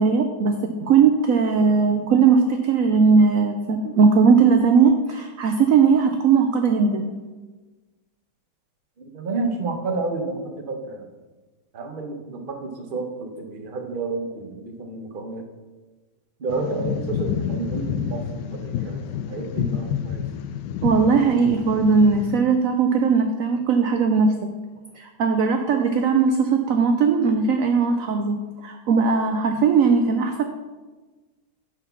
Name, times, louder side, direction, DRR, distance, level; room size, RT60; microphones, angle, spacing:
voice 1, 0.0-7.1 20.8-24.5 24.9-30.4, right 5 dB, 70° right, 5 dB, 0.8 m, -19 dB
voice 2, 9.0-11.1 11.7-15.5 16.4-20.2, right 3 dB, 35° right, 3 dB, 0.9 m, -30 dB
sound 1, 16.5-22.4, left 8 dB, 80° left, 1.2 m, -29 dB
9.8 x 4.4 x 5.7 m, 1.3 s
omnidirectional pair, 1.9 m